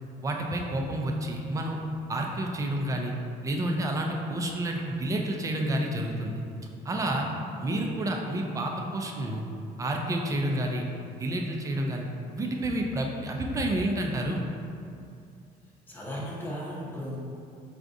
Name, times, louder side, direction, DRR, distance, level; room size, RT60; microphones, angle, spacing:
voice 1, 0.2-1.8 2.1-3.1 3.4-6.4 6.8-7.3 7.6-9.4 9.8-10.8 11.2-12.1 12.3-14.4, right 1 dB, 20° right, 1 dB, 0.4 m, -29 dB
voice 2, 15.9-17.2, equal, 10° left, -6 dB, 0.8 m, -36 dB
4.6 x 2.4 x 2.6 m, 2.5 s
cardioid pair, 110°, 17 cm